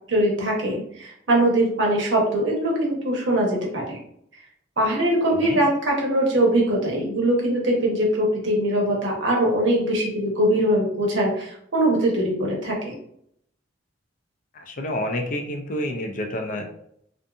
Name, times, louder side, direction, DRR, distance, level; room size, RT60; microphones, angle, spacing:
voice 1, 0.1-4.0 4.8-12.9, right 1 dB, 75° right, -2 dB, 0.9 m, -22 dB
voice 2, 14.5-16.6, left 1 dB, 45° left, 4 dB, 0.4 m, -28 dB
2.6 x 2.4 x 2.4 m, 0.70 s
head